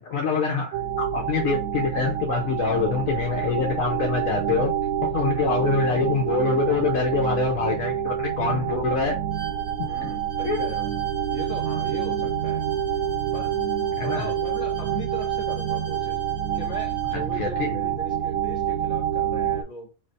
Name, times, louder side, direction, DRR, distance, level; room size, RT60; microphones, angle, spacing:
voice 1, 0.0-4.7 5.0-9.1 9.8-9.9 10.4-10.6 14.0-14.3 17.3-17.7, left 5 dB, 70° left, 1 dB, 1.1 m, -25 dB
sound 1, 0.7-19.6, right 9 dB, 90° right, 1.1 m, -27 dB
Bowed string instrument, 9.3-17.2, right 3 dB, 65° right, 1.6 m, -46 dB
voice 2, 9.8-11.0 11.3-12.6 13.3-13.5 14.0-16.2 16.5-19.9, equal, 25° left, -1 dB, 2.1 m, -39 dB
4.8 x 3.2 x 2.7 m, 0.34 s
omnidirectional pair, 1.5 m